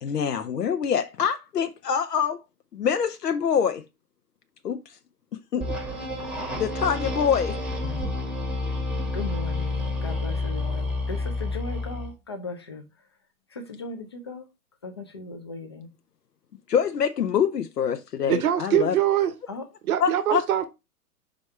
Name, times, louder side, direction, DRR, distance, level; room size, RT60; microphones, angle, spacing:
voice 1, 0.0-2.4 2.7-3.8 4.6-4.8 5.3-5.7 6.5-8.0 16.7-18.9 20.0-20.4, left 7 dB, 85° left, 0.7 m, -25 dB
sound 1, 5.6-12.1, left 2 dB, ahead, 0.9 m, -29 dB
voice 2, 9.1-12.8 13.5-14.5 14.8-15.9 19.5-19.6, left 3 dB, 20° left, 0.3 m, -37 dB
voice 3, 18.3-19.3 19.8-20.7, right 10 dB, 65° right, 0.8 m, -23 dB
5.1 x 3.5 x 5.4 m
hypercardioid pair, 125°, 47 cm